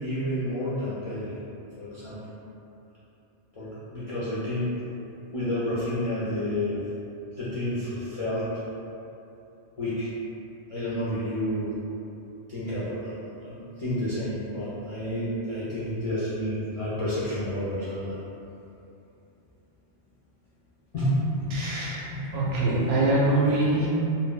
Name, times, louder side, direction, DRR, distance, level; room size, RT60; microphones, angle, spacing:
voice 1, 0.0-1.3 1.8-2.2 3.6-4.7 5.3-6.8 7.4-8.5 9.8-10.1 10.7-11.7 12.5-13.1 13.4-18.2 20.9-21.5 21.8-22.2, left 1 dB, 50° left, -12 dB, 0.4 m, -30 dB
voice 2, 21.5-22.0 22.3-23.9, right 2 dB, 65° right, -6 dB, 0.7 m, -24 dB
2.2 x 2.0 x 3.8 m, 2.8 s
omnidirectional pair, 1.2 m